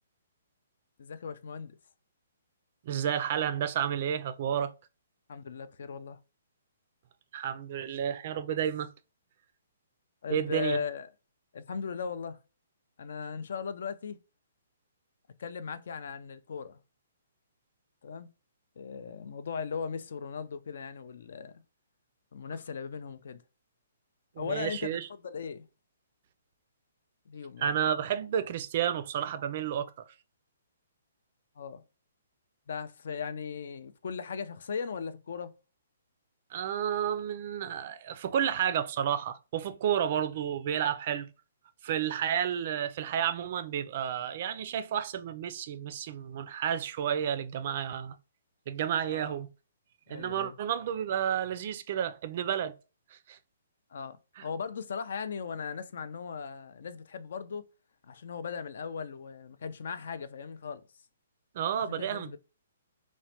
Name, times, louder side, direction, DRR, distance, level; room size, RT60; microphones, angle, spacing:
voice 1, 1.0-1.8 5.3-6.2 10.2-11.1 11.5-12.4 13.0-14.2 15.4-16.8 18.0-18.3 18.8-21.5 22.3-23.4 24.4-25.0 25.2-25.7 27.3-27.7 31.6-31.8 32.7-35.5 49.1-49.4 50.1-50.6 53.9-57.7 58.0-60.8 61.9-62.4, left 6 dB, 65° left, 0.3 m, -38 dB
voice 2, 2.9-4.7 7.3-8.9 10.3-10.8 24.4-25.1 27.6-30.1 36.5-41.3 41.8-48.2 48.7-49.5 50.1-52.7 53.1-53.4 54.4-54.5 61.5-62.4, right 9 dB, 45° right, 0.3 m, -31 dB
3.1 x 2.1 x 2.8 m
hypercardioid pair, 155°, 0 cm